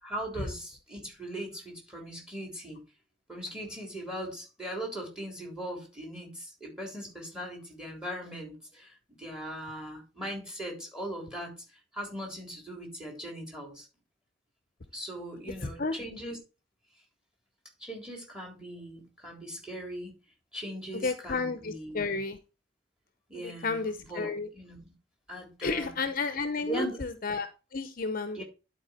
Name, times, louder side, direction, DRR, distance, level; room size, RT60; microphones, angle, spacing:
voice 1, 0.0-2.8 3.3-13.9 14.9-16.4 17.8-20.2 20.5-22.1 23.3-24.9 25.3-26.0 26.7-27.0 28.3-28.4, right 1 dB, 5° right, 3.5 m, -40 dB
voice 2, 21.0-22.4 23.4-24.5 25.6-28.4, left 4 dB, 50° left, 0.8 m, -32 dB
11.0 x 4.8 x 4.3 m
head